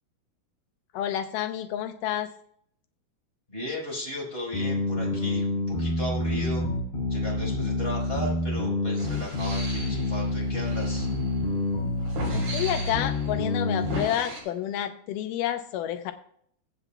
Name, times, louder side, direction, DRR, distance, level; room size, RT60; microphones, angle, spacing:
voice 1, 0.9-2.3 12.3-16.1, left 11 dB, 90° left, 8 dB, 1.9 m, -29 dB
voice 2, 3.5-6.6 7.1-11.1, left 1 dB, 15° left, -3 dB, 4.2 m, -35 dB
sound 1, 4.5-14.0, left 2 dB, 45° left, 4.9 m, -28 dB
sound 2, 9.0-14.4, right 1 dB, 65° right, 5.5 m, -39 dB
23.0 x 8.0 x 2.3 m, 0.65 s
omnidirectional pair, 4.5 m